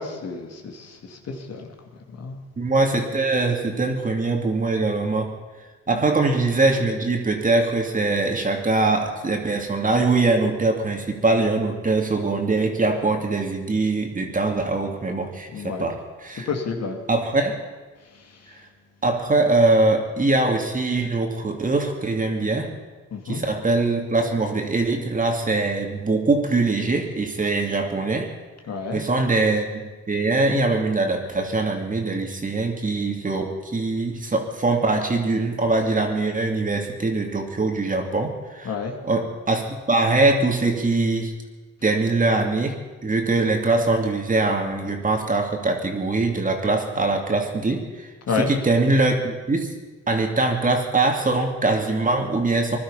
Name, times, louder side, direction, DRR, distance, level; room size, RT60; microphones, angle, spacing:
voice 1, 0.0-1.7 2.2-2.4 5.9-6.0 15.5-15.9 16.5-17.0 23.1-23.4 28.7-29.0 38.6-39.0 48.3-48.5, left 5 dB, 55° left, 3 dB, 2.6 m, -29 dB
voice 2, 2.6-5.3 5.9-16.5 17.1-17.6 19.0-22.7 23.3-28.3 28.9-29.8 30.1-38.7 39.0-41.3 41.8-49.7 50.1-52.8, right 3 dB, 25° right, 3 dB, 2.6 m, -22 dB
20.5 x 12.0 x 5.7 m, 1.3 s
cardioid pair, 90°, 30 cm